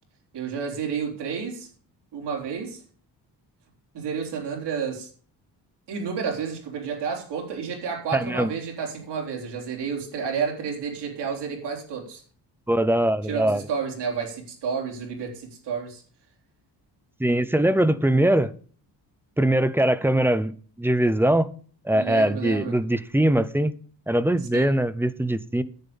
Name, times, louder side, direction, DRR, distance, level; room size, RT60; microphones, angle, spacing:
voice 1, 0.3-1.7 2.1-2.8 3.9-5.1 5.9-12.2 13.3-16.0 21.9-22.7 24.5-24.7, right 6 dB, 90° right, 4.0 m, -30 dB
voice 2, 8.1-8.5 12.7-13.6 17.2-18.5 19.4-20.5 20.8-21.5 21.9-23.7 24.1-25.6, right 1 dB, 5° right, 0.6 m, -21 dB
10.5 x 8.7 x 5.3 m
cardioid pair, 140°, 40 cm